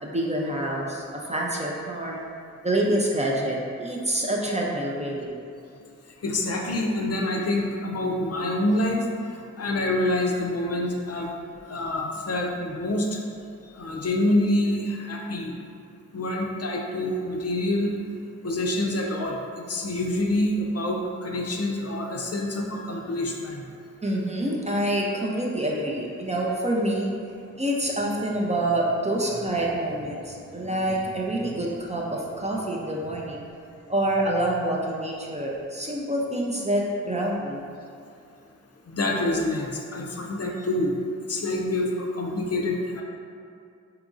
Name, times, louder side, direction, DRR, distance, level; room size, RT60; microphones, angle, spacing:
voice 1, 0.0-2.2 2.6-5.3 24.0-27.1 27.6-33.4 33.9-37.6, right 1 dB, 20° right, -2 dB, 0.5 m, -27 dB
voice 2, 6.2-9.0 9.6-11.3 11.7-13.1 13.8-15.5 16.1-18.0 18.4-19.4 19.7-23.6 38.9-40.9 41.3-43.0, left 1 dB, 50° left, -1 dB, 0.5 m, -26 dB
3.6 x 2.9 x 2.5 m, 2.4 s
cardioid pair, 45°, 32 cm